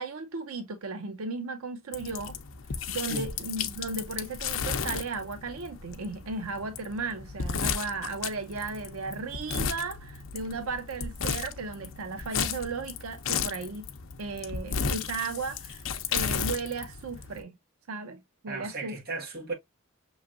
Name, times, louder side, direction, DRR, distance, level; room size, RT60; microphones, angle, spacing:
voice 1, 0.0-2.4 2.9-13.9 14.2-15.8 16.1-17.5 17.9-19.0, right 3 dB, 85° right, 0.6 m, -35 dB
sound 1, 1.9-17.4, left 6 dB, 65° left, 0.6 m, -34 dB
voice 2, 18.5-19.5, right 3 dB, 45° right, 1.5 m, -35 dB
5.9 x 3.1 x 2.5 m
head